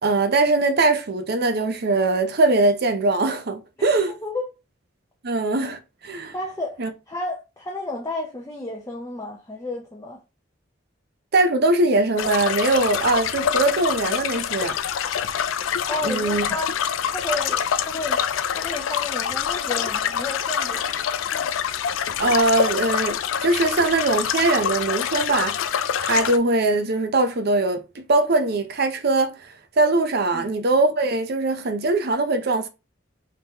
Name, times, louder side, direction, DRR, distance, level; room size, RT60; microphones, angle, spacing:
voice 1, 0.0-4.1 5.2-6.3 6.8-6.9 11.3-14.8 16.0-16.5 22.2-32.7, right 2 dB, 55° right, 0.6 m, -21 dB
voice 2, 4.2-4.5 6.3-6.8 7.1-10.2 15.9-16.7 17.1-18.2 18.5-20.8 30.3-30.5, left 2 dB, 15° left, 0.5 m, -32 dB
sound 1, 12.2-26.4, left 8 dB, 85° left, 0.3 m, -26 dB
3.6 x 3.0 x 2.8 m
head